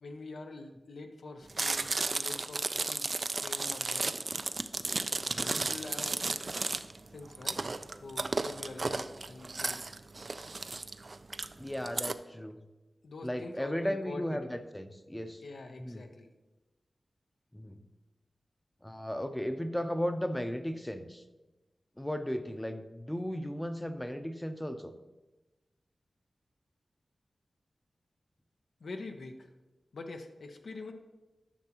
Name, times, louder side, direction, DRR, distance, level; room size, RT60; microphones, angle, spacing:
voice 1, 0.0-3.1 3.4-4.1 5.5-6.6 7.1-7.6 8.0-9.8 13.0-14.4 15.4-16.3 28.8-29.4 29.9-30.9, left 3 dB, 85° left, 4 dB, 0.6 m, -45 dB
Chewing mastication, 1.5-12.1, right 3 dB, 55° right, 0.3 m, -34 dB
voice 2, 11.6-12.6 13.2-15.4 15.8-16.0 17.5-17.8 18.8-21.2 22.0-24.9, equal, 10° left, 9 dB, 0.6 m, -35 dB
9.9 x 5.9 x 2.9 m, 1.1 s
cardioid pair, 50°, 0 cm